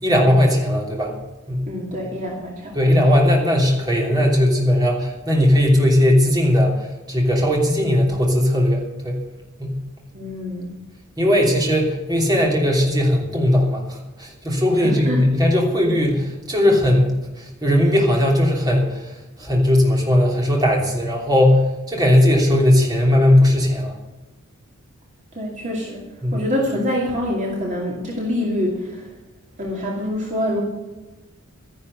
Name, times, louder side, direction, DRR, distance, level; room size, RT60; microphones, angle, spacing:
voice 1, 0.0-1.1 1.5-1.6 2.7-9.2 9.6-9.8 11.2-19.1 19.4-24.0 26.2-26.5, left 1 dB, 20° right, -1 dB, 3.1 m, -18 dB
voice 2, 1.7-3.0 10.1-10.7 14.8-15.2 25.3-26.1 26.3-29.1 29.6-30.6, left 1 dB, 35° right, -2 dB, 2.4 m, -25 dB
12.5 x 11.0 x 6.7 m, 1.1 s
head